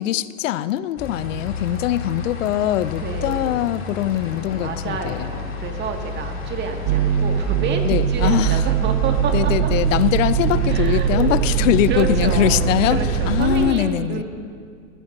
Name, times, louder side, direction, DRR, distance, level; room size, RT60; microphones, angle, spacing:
voice 1, 0.0-5.3 7.8-8.6 9.3-13.0 13.3-14.2, left 12 dB, 70° left, 17 dB, 0.6 m, -22 dB
sound 1, 1.0-13.7, left 4 dB, 30° left, 2.7 m, -32 dB
voice 2, 3.0-3.7 4.6-9.7 10.7-11.3 11.9-14.2, right 5 dB, 25° right, 3 dB, 1.8 m, -29 dB
sound 2, 6.9-13.7, right 8 dB, 45° right, 0.6 m, -21 dB
23.0 x 15.5 x 2.6 m, 2.1 s
hypercardioid pair, 110°, 40 cm